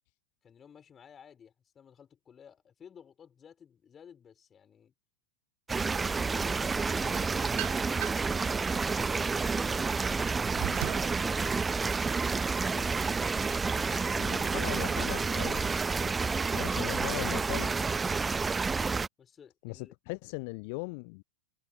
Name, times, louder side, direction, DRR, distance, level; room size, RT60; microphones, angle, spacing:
voice 1, 0.4-4.9 6.2-10.2 12.2-13.0 13.5-15.3 19.2-19.9, left 7 dB, 20° left, 6.1 m, -54 dB
sound 1, 5.7-19.1, right 4 dB, 15° right, 0.7 m, -29 dB
sound 2, 7.0-8.4 8.9-11.2, right 30 dB, 45° right, 0.9 m, -39 dB
voice 2, 14.2-15.7 16.5-17.7 19.6-21.2, left 31 dB, 45° left, 0.7 m, -39 dB
figure-of-eight pair, 90°, 0 cm